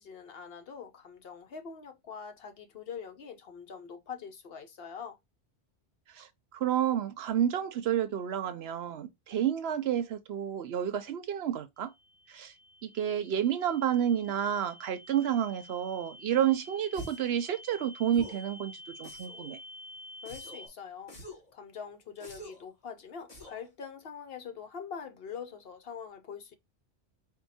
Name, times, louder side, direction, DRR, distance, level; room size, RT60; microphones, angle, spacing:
voice 1, 0.0-5.2 20.2-21.1 21.5-26.5, left 6 dB, 60° left, 0.9 m, -44 dB
voice 2, 6.1-11.9 12.3-12.5 12.8-18.7 19.0-19.6, right 10 dB, 65° right, 0.8 m, -30 dB
sound 1, 11.8-20.7, left 1 dB, 5° left, 0.5 m, -50 dB
sound 2, 16.9-17.3 18.1-18.5 19.0-19.5 20.3-20.7 21.1-21.5 22.2-22.7 23.3-23.7, left 1 dB, 35° left, 1.2 m, -46 dB
4.5 x 2.2 x 4.0 m
omnidirectional pair, 1.2 m